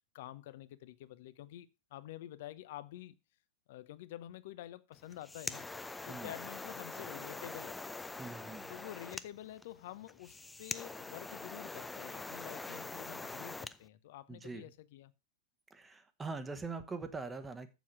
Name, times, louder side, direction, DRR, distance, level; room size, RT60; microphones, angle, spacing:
voice 1, 0.1-3.2 3.7-5.7 6.0-7.8 8.7-15.1, left 13 dB, 55° left, 0.8 m, -49 dB
sound 1, 5.0-13.8, left 3 dB, 10° left, 0.5 m, -44 dB
voice 2, 8.2-8.7 14.3-14.6 15.7-17.7, right 4 dB, 15° right, 1.2 m, -43 dB
7.2 x 7.2 x 6.0 m
figure-of-eight pair, 95°, 0 cm